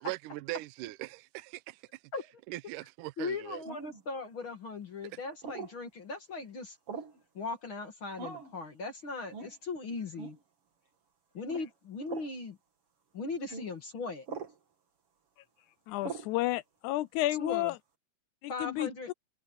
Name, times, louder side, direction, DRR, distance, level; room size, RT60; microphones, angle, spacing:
voice 1, 0.0-1.8 2.5-3.6, right 18 dB, 80° right, 2.2 m, -40 dB
voice 2, 3.2-6.8 7.3-10.4 11.3-12.6 13.1-14.3 17.4-17.7 18.5-19.1, left 3 dB, 45° left, 2.5 m, -38 dB
sound 1, 3.7-4.0 5.4-5.8 6.9-7.2 8.2-8.5 9.3-9.5 10.2-10.4 11.5-11.7 12.1-12.3 13.5-13.7 14.3-14.6 16.0-16.3, right 5 dB, 45° right, 3.1 m, -41 dB
voice 3, 15.9-17.8 18.4-19.1, left 16 dB, 80° left, 1.8 m, -31 dB
omnidirectional pair, 3.7 m